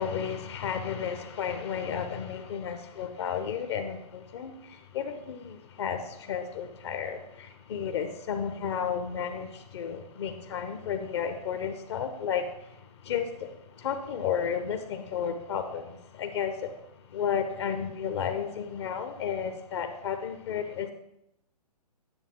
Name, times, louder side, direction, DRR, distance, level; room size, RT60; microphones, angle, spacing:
voice 1, 0.0-12.7 13.0-13.5 13.8-16.7 17.1-20.9, left 7 dB, 40° left, 7 dB, 0.9 m, -33 dB
9.9 x 7.0 x 3.7 m, 0.81 s
figure-of-eight pair, 130°, 21 cm